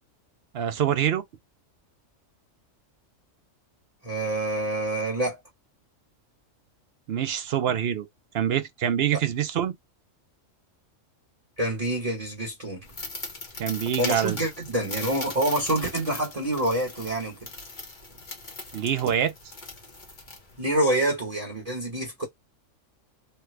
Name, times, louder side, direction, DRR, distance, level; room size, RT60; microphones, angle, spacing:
voice 1, 0.5-1.2 7.1-8.1 8.3-9.7 13.6-14.4 18.7-19.3, right 9 dB, 60° right, 0.7 m, -25 dB
voice 2, 4.0-5.4 11.6-12.8 14.0-17.4 20.6-22.2, right 1 dB, 30° right, 1.2 m, -27 dB
sound 1, 12.8-20.9, left 3 dB, 40° left, 1.1 m, -39 dB
3.3 x 2.2 x 3.1 m
omnidirectional pair, 1.4 m